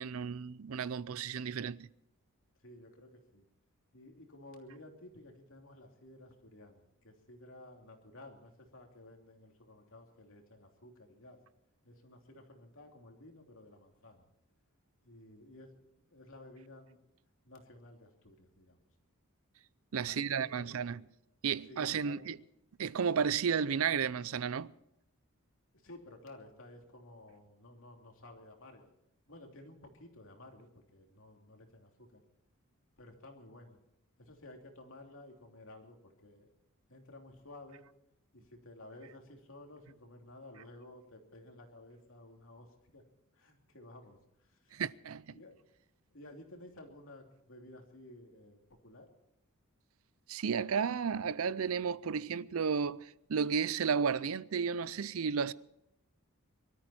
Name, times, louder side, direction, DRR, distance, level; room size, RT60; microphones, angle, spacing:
voice 1, 0.0-1.9 19.9-21.0 21.4-22.4 22.8-24.7 44.7-45.4 50.3-55.5, right 6 dB, 70° right, 0.5 m, -33 dB
voice 2, 2.6-3.4 3.9-11.4 11.8-14.3 15.0-17.0 17.4-18.8 20.1-20.8 21.7-22.2 25.7-28.9 29.3-32.2 33.0-33.8 34.2-36.5 36.9-37.9 38.3-43.0 43.3-44.8 45.3-45.6 46.1-49.1, left 1 dB, 65° left, 3.0 m, -54 dB
24.0 x 13.5 x 4.3 m
head